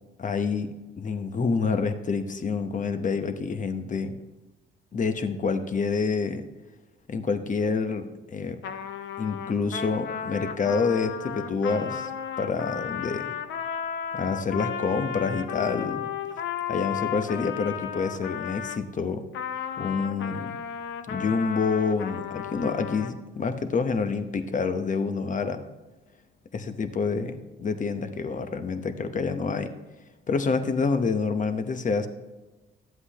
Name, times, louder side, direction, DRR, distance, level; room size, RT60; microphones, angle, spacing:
voice 1, 0.2-4.2 4.9-6.4 7.1-8.6 9.2-12.1 12.4-13.3 14.1-16.1 16.7-19.2 19.8-20.6 21.1-25.6 26.5-29.7 30.3-32.1, left 5 dB, 40° left, 8 dB, 0.9 m, -27 dB
Trumpet, 8.6-18.8 19.3-23.1, left 8 dB, 70° left, 0.7 m, -34 dB
11.5 x 7.9 x 3.0 m, 1.1 s
cardioid pair, 90°, 20 cm